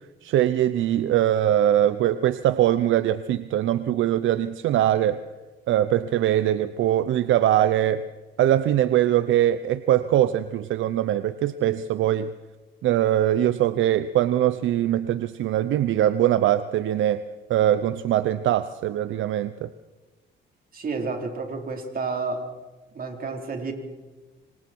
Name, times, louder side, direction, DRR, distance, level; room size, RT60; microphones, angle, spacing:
voice 1, 0.2-5.2 5.7-8.0 8.4-12.3 12.8-17.2 17.5-19.7, right 12 dB, 75° right, 13 dB, 0.7 m, -22 dB
voice 2, 20.7-22.5 22.9-23.7, right 4 dB, 45° right, 2 dB, 4.4 m, -30 dB
26.0 x 25.5 x 4.7 m, 1.2 s
cardioid pair, 90°, 20 cm